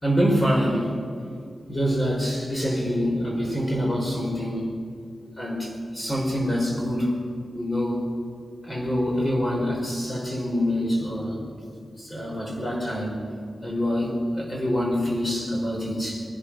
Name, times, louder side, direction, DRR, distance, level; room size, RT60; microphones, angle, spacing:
voice 1, 0.0-0.9 1.7-4.7 5.4-7.2 7.5-8.1 8.6-11.4 12.0-13.2 13.6-16.2, equal, 20° left, -2 dB, 4.4 m, -25 dB
23.5 x 10.0 x 5.9 m, 2.3 s
wide cardioid pair, 165°, 0 cm